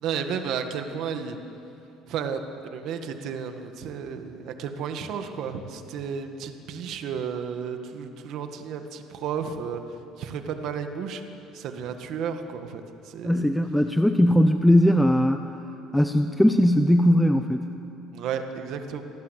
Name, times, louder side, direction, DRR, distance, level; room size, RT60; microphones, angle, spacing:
voice 1, 0.0-1.4 2.1-9.8 10.2-11.2 11.5-13.5 18.1-19.0, right 7 dB, 50° right, 6 dB, 1.8 m, -33 dB
voice 2, 13.2-15.4 15.9-17.7, equal, 5° left, 7 dB, 0.6 m, -19 dB
27.0 x 18.5 x 8.3 m, 2.9 s
cardioid pair, 180°, 0 cm